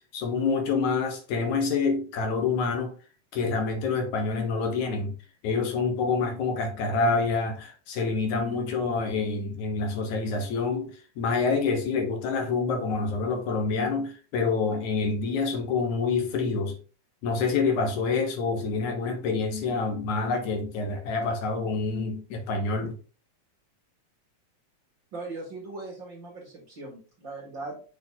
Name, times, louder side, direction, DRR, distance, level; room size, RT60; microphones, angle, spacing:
voice 1, 0.1-3.0 3.3-5.2 5.4-16.8 17.2-23.0, left 4 dB, 70° left, 2.5 m, -27 dB
voice 2, 25.1-27.8, right 3 dB, 45° right, 2.0 m, -39 dB
6.9 x 4.0 x 3.6 m
omnidirectional pair, 3.5 m